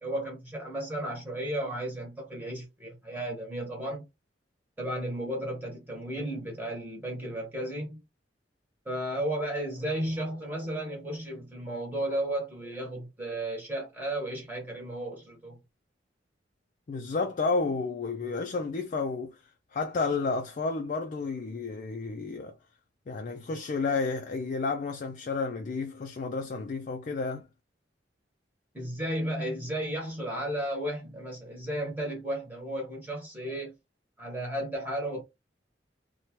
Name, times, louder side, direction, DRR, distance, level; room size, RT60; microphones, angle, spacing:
voice 1, 0.0-4.0 4.8-8.0 8.8-15.6 28.7-33.7 34.2-35.2, right 1 dB, 10° right, 1.1 m, -34 dB
voice 2, 16.9-19.4 19.7-22.6 23.1-27.5, left 4 dB, 45° left, 0.4 m, -31 dB
2.8 x 2.2 x 2.9 m
head